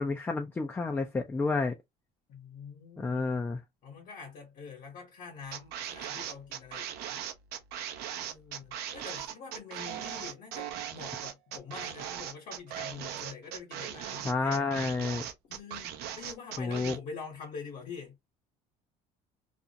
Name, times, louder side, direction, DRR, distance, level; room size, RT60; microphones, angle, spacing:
voice 1, 0.0-1.8 3.0-3.6 14.2-15.2 16.6-17.0, left 3 dB, 10° left, 0.3 m, -30 dB
voice 2, 2.3-3.4 3.8-7.2 8.2-14.8 15.5-18.2, left 5 dB, 55° left, 1.0 m, -45 dB
sound 1, 5.5-17.0, right 10 dB, 65° right, 0.6 m, -39 dB
2.4 x 2.0 x 2.6 m
cardioid pair, 120°, 17 cm